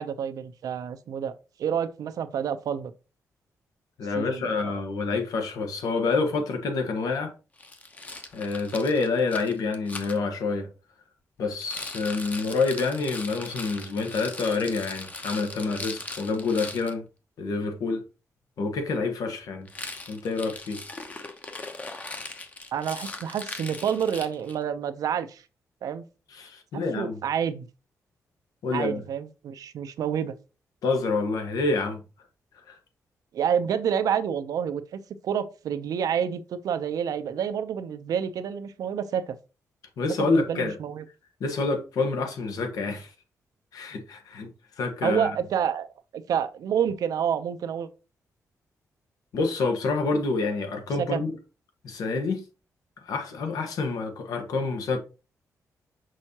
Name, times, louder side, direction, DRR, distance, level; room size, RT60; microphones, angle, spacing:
voice 1, 0.0-1.3 1.6-2.9 4.1-4.7 22.7-25.4 25.8-26.0 26.7-27.7 28.7-30.3 33.3-39.4 40.2-41.0 45.0-47.9 51.0-51.2, right 8 dB, 80° right, 0.7 m, -28 dB
voice 2, 4.0-7.3 8.3-10.7 11.4-17.0 17.4-18.0 18.6-19.7 20.1-20.8 26.3-27.2 28.6-29.0 30.8-32.0 32.7-32.8 40.0-40.8 41.4-43.1 43.7-44.5 44.8-45.3 49.3-51.3 51.8-52.4 53.0-55.0, left 3 dB, 85° left, 1.5 m, -27 dB
Rattle, 7.6-10.2 11.5-16.9 19.7-24.6, left 2 dB, 25° left, 0.9 m, -39 dB
6.2 x 5.5 x 2.9 m
wide cardioid pair, 145°, 6 cm